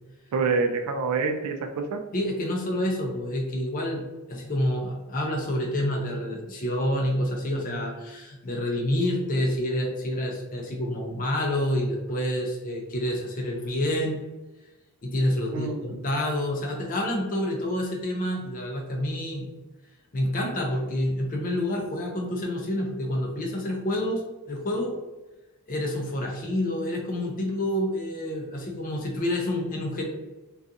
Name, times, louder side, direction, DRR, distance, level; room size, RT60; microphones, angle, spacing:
voice 1, 0.3-2.0 15.5-16.0, right 4 dB, 80° right, 7 dB, 0.3 m, -27 dB
voice 2, 2.1-14.2 15.0-19.5 20.1-24.9 25.7-30.0, left 1 dB, 40° left, 1 dB, 0.5 m, -28 dB
2.4 x 2.3 x 2.6 m, 1.1 s
head